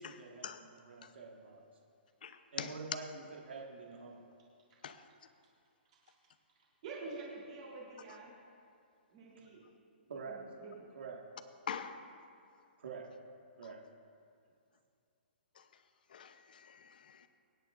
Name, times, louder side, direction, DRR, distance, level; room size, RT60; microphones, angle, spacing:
voice 1, 0.0-1.7 2.5-4.2 9.4-9.5 10.1-10.4 10.9-11.2 12.8-13.1 13.6-13.8, right 4 dB, 85° right, -1 dB, 1.7 m, -47 dB
voice 2, 2.2-2.7 4.8-5.0 11.7-12.0 15.6-15.7 16.1-17.3, left 7 dB, 55° left, 10 dB, 0.8 m, -44 dB
voice 3, 6.8-8.3 9.1-9.6 10.1-10.8, right 3 dB, 35° right, -6 dB, 3.4 m, -47 dB
25.5 x 9.7 x 2.5 m, 2.4 s
hypercardioid pair, 175°, 6 cm